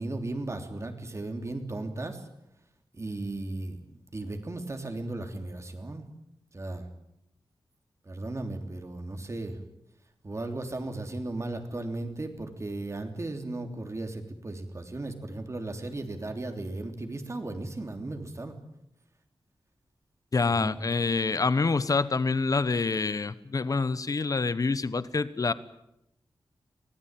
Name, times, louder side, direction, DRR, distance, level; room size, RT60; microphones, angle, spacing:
voice 1, 0.0-2.2 2.9-6.0 6.5-6.9 8.0-9.6 10.2-18.5 20.4-20.8, right 2 dB, 35° right, 6 dB, 3.3 m, -36 dB
voice 2, 20.3-25.5, left 4 dB, 40° left, 15 dB, 1.1 m, -26 dB
24.5 x 18.0 x 9.1 m, 0.82 s
wide cardioid pair, 125°, 9 cm